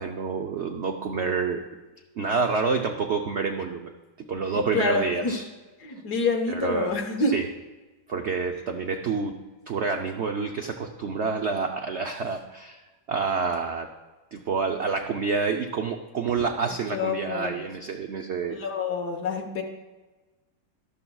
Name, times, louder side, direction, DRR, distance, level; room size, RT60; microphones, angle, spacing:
voice 1, 0.0-1.6 2.2-3.9 4.3-5.4 5.9-6.0 6.5-6.9 7.3-7.5 8.1-9.4 9.7-12.8 13.1-13.9 14.3-18.6, right 4 dB, 75° right, 4 dB, 0.6 m, -28 dB
voice 2, 4.5-5.3 5.8-7.4 8.2-8.3 16.9-17.6 18.5-19.6, left 3 dB, 60° left, 3 dB, 1.7 m, -27 dB
13.0 x 12.0 x 2.3 m, 1.2 s
omnidirectional pair, 1.9 m